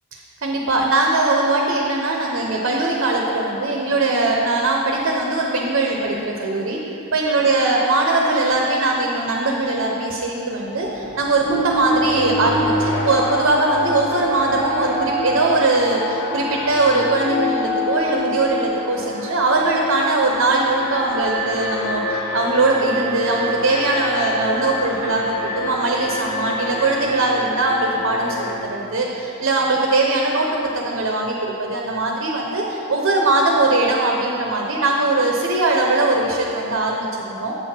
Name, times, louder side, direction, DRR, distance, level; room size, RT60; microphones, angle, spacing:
voice 1, 0.1-6.8 7.1-30.5 30.7-37.5, right 2 dB, 60° right, 0 dB, 0.7 m, -20 dB
Alarm, 10.7-28.6, left 1 dB, 55° left, 1.4 m, -26 dB
8.0 x 6.0 x 4.3 m, 2.9 s
head